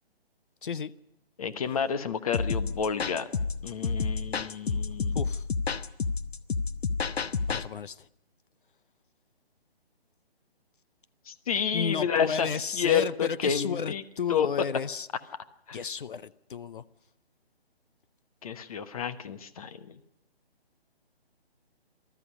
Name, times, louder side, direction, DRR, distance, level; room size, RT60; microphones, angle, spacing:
voice 1, 1.4-3.3 3.6-5.2 11.3-14.0 14.3-14.7 15.7-15.8 18.4-20.0, left 7 dB, 35° left, 1.2 m, -30 dB
sound 1, 2.3-7.7, left 4 dB, 75° left, 1.1 m, -30 dB
voice 2, 5.1-5.5 7.5-8.1 11.7-15.1 15.7-16.8, left 6 dB, 55° left, 0.7 m, -33 dB
19.5 x 13.5 x 9.9 m
figure-of-eight pair, 155°, 31 cm